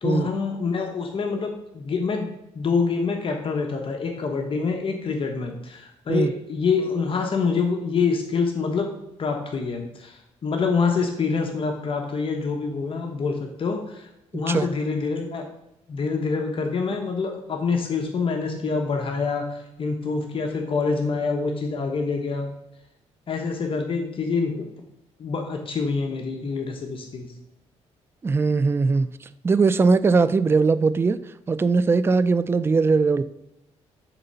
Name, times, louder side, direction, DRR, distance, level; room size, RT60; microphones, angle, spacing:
voice 1, 0.0-8.9 9.2-15.5 15.9-22.5 23.3-24.7 25.2-27.3, left 4 dB, 45° left, 3 dB, 1.1 m, -26 dB
voice 2, 28.2-29.1 29.4-31.2 31.5-33.2, right 4 dB, 20° right, 14 dB, 0.3 m, -20 dB
8.0 x 3.8 x 5.5 m, 0.85 s
cardioid pair, 105°, 12 cm